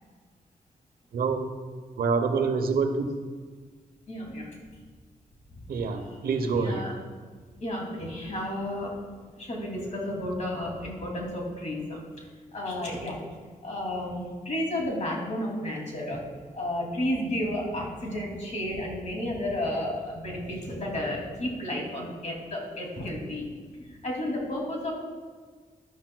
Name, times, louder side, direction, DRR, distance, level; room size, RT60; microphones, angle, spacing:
voice 1, 1.1-1.5 2.0-3.0 5.7-6.8, right 4 dB, 90° right, 7 dB, 0.9 m, -26 dB
voice 2, 4.1-4.5 6.1-6.2 6.5-6.9 7.6-8.9 9.4-12.0 12.5-13.2 13.6-16.2 16.5-23.5 23.7-24.9, left 1 dB, 50° left, -1 dB, 2.7 m, -32 dB
12.0 x 11.5 x 2.3 m, 1.5 s
wide cardioid pair, 130°, 15 cm